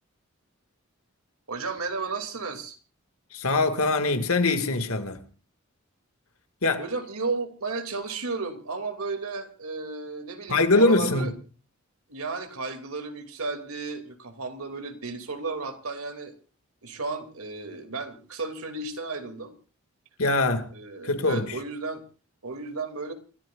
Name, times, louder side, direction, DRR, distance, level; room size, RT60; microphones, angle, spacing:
voice 1, 1.5-2.8 6.8-11.3 12.1-16.3 16.8-19.5 20.7-22.0 22.4-23.1, right 3 dB, 85° right, 2.8 m, -33 dB
voice 2, 3.3-5.2 6.6-6.8 10.5-11.3 20.2-20.7 21.0-21.6, left 3 dB, 80° left, 2.3 m, -23 dB
29.0 x 14.0 x 2.6 m
head